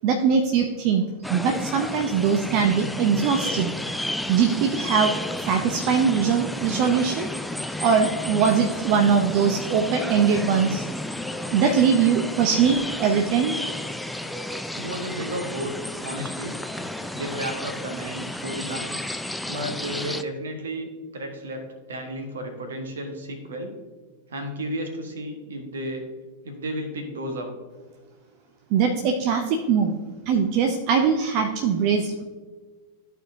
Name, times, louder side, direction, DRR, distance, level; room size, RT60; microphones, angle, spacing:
voice 1, 0.0-3.7 4.3-5.1 5.4-7.3 7.8-10.9 11.5-13.6 28.7-30.0 30.3-32.2, right 6 dB, 45° right, 4 dB, 0.6 m, -21 dB
sound 1, 1.2-20.2, left 1 dB, 5° left, 0.3 m, -32 dB
voice 2, 14.8-15.7 16.0-16.6 17.1-19.0 19.5-21.6 21.9-23.7 24.3-26.0 26.4-27.5, right 1 dB, 65° right, 5 dB, 1.3 m, -33 dB
13.5 x 4.5 x 2.7 m, 1.4 s
figure-of-eight pair, 90°, 0 cm